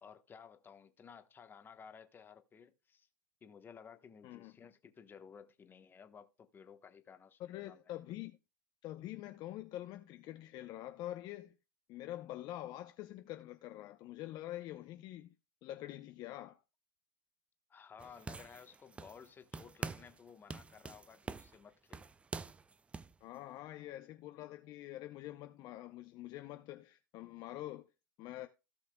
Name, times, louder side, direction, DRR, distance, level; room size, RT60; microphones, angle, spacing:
voice 1, 0.0-3.1 3.4-7.8 17.7-22.1, left 7 dB, 20° left, 1.2 m, -56 dB
voice 2, 7.4-8.4 8.8-11.5 11.9-15.3 15.6-16.6 23.2-27.9 28.2-28.5, left 14 dB, 40° left, 0.7 m, -46 dB
sound 1, 18.0-19.3 19.5-20.2 20.5-23.1, right 4 dB, 10° right, 0.4 m, -45 dB
16.5 x 5.7 x 2.3 m
hypercardioid pair, 125°, 11 cm